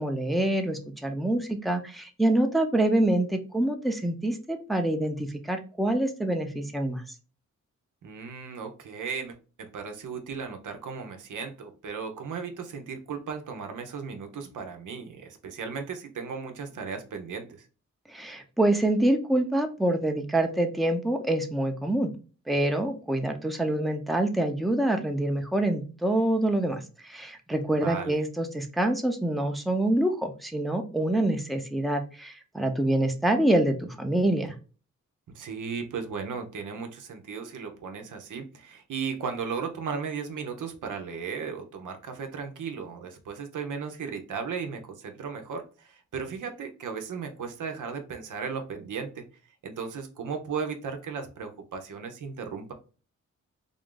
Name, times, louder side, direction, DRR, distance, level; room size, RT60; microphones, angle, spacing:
voice 1, 0.0-7.0 18.1-22.1 22.5-34.6, right 1 dB, ahead, 5 dB, 0.6 m, -26 dB
voice 2, 8.0-17.7 27.8-28.2 35.3-49.2 49.6-52.7, right 5 dB, 85° right, 6 dB, 0.8 m, -36 dB
3.7 x 2.5 x 3.7 m, 0.36 s
cardioid pair, 85°, 30 cm